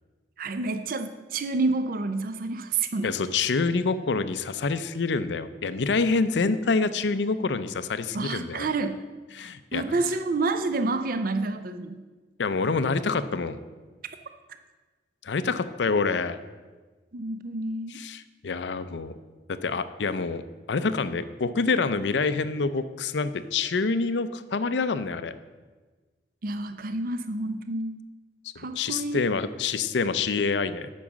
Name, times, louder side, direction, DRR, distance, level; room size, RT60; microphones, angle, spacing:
voice 1, 0.4-3.1 8.1-9.0 9.7-12.1 17.1-18.0 26.4-28.0 28.6-29.3, right 3 dB, 55° right, 9 dB, 0.5 m, -29 dB
voice 2, 3.0-8.7 9.3-9.8 12.4-13.6 15.2-16.4 17.9-19.1 19.6-20.4 20.7-25.4 28.7-30.9, left 4 dB, 85° left, 12 dB, 0.5 m, -26 dB
8.6 x 6.1 x 7.2 m, 1.3 s
head